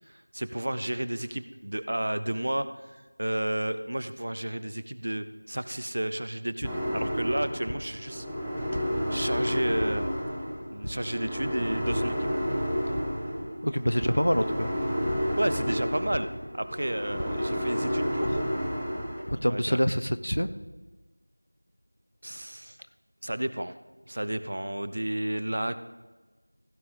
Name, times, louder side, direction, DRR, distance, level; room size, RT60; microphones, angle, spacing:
voice 1, 0.1-8.3 8.6-8.9 9.1-10.1 10.7-12.1 15.4-16.3 16.5-18.4 19.5-19.8 22.2-22.8 23.2-23.8 24.1-25.8, right 1 dB, 35° right, 12 dB, 0.5 m, -32 dB
sound 1, 6.6-6.7 7.6-7.8 8.7-8.8 9.8-9.9 10.8-10.9 11.9-12.0 12.4-12.6 12.9-13.0 14.0-14.1 15.0-15.2 16.1-16.2 17.1-17.2 18.2-18.3 19.3-19.4 20.1-20.4, equal, 65° left, 1.4 m, -35 dB
sound 2, 6.6-19.2, equal, ahead, 0.8 m, -31 dB
voice 2, 13.6-14.7 19.3-20.5, equal, 80° left, 13 dB, 0.8 m, -25 dB
15.5 x 6.1 x 5.3 m, 1.2 s
figure-of-eight pair, 175°, 0 cm